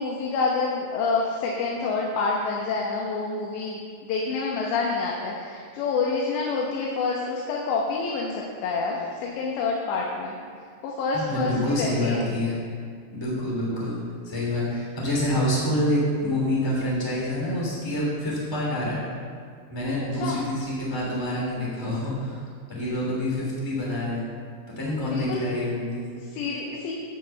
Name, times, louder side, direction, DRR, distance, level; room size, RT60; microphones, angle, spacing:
voice 1, 0.0-10.4 10.8-12.3 20.1-20.4 25.0-25.5 26.2-26.9, left 4 dB, 85° left, -2 dB, 3.3 m, -28 dB
voice 2, 11.1-12.6 13.1-14.0 14.2-19.0 19.7-22.4 22.7-24.2 24.8-26.0, left 1 dB, 10° left, -5 dB, 2.0 m, -27 dB
9.8 x 6.8 x 6.9 m, 2.1 s
omnidirectional pair, 4.9 m